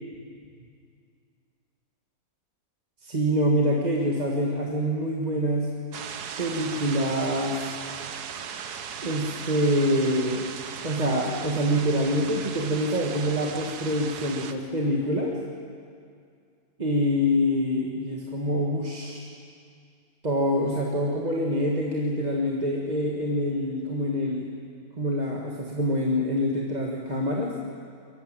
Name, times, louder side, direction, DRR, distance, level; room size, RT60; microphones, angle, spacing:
voice 1, 3.0-5.7 6.4-7.7 9.0-10.5 10.8-15.3 16.8-19.3 20.2-24.5 25.0-27.6, equal, 30° right, -2 dB, 1.7 m, -25 dB
sound 1, 5.9-14.5, right 7 dB, 90° right, 1.5 m, -37 dB
23.0 x 14.5 x 9.0 m, 2.3 s
omnidirectional pair, 1.6 m